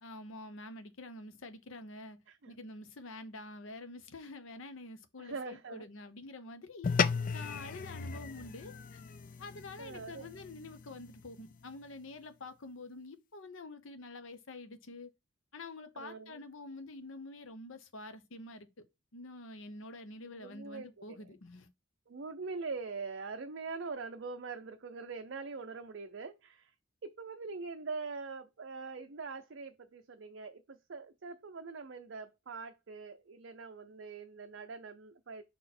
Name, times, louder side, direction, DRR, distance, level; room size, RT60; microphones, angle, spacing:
voice 1, 0.0-2.2 2.5-9.0 9.4-15.1 15.5-18.8 19.1-21.7, left 2 dB, 70° left, 0.9 m, -47 dB
voice 2, 5.2-5.9 9.8-10.3 16.0-16.4 20.2-21.2 22.1-26.7 27.0-35.4, right 4 dB, 60° right, 0.5 m, -43 dB
sound 1, 6.8-11.5, left 6 dB, 40° left, 0.4 m, -36 dB
5.6 x 4.3 x 4.2 m
head